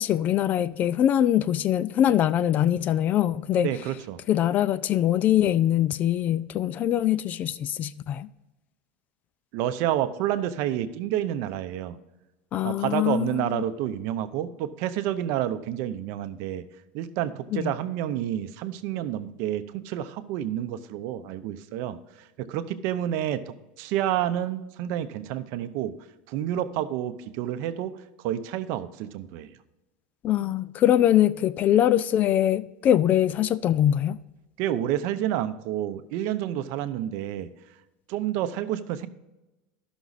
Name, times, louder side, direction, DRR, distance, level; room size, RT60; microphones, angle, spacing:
voice 1, 0.0-3.7 4.3-8.3 12.5-13.6 17.5-17.7 30.2-34.2, left 11 dB, 35° left, 0.3 m, -23 dB
voice 2, 3.6-4.2 9.5-12.0 12.6-16.6 16.9-25.9 26.3-29.6 34.6-37.5 38.1-39.1, right 11 dB, 55° right, 0.7 m, -29 dB
13.0 x 6.1 x 4.0 m
supercardioid pair, 145°, 5 cm